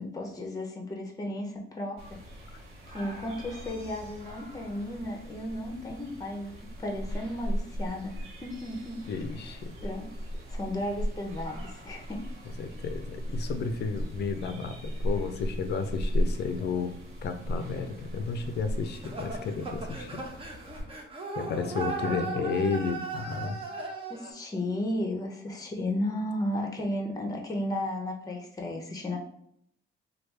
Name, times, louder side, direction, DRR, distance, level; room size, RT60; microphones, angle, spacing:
voice 1, 0.0-2.5 2.9-6.5 6.8-8.1 8.4-9.0 9.5-9.6 9.8-12.2 22.1-22.5 24.1-29.2, left 1 dB, 20° left, 2 dB, 0.7 m, -34 dB
sound 1, 2.0-20.8, equal, 75° right, 1.4 m, -37 dB
voice 2, 9.1-9.7 12.6-17.0 17.2-20.2 21.4-23.6, left 5 dB, 55° left, 8 dB, 0.5 m, -32 dB
sound 2, 18.9-24.3, right 4 dB, 30° right, 0.8 m, -37 dB
3.2 x 2.4 x 3.2 m, 0.66 s
cardioid pair, 90°, 20 cm